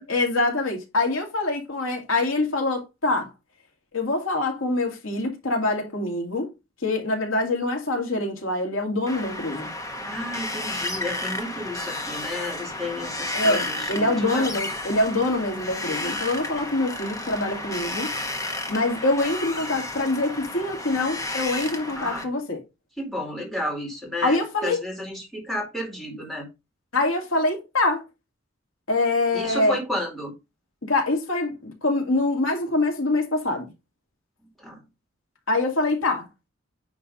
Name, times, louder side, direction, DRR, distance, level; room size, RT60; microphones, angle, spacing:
voice 1, 0.1-3.3 3.9-6.5 6.8-9.7 13.3-18.1 18.7-22.6 24.2-24.8 26.9-28.0 28.9-29.8 30.9-33.6 35.5-36.3, left 2 dB, 85° left, 2.3 m, -24 dB
Wind, 9.1-22.2, left 2 dB, 15° left, 1.3 m, -32 dB
voice 2, 10.0-14.5 17.9-18.0 22.0-22.3 23.0-26.5 29.3-30.3 34.6-34.8, left 1 dB, ahead, 2.3 m, -32 dB
9.6 x 3.5 x 5.4 m
head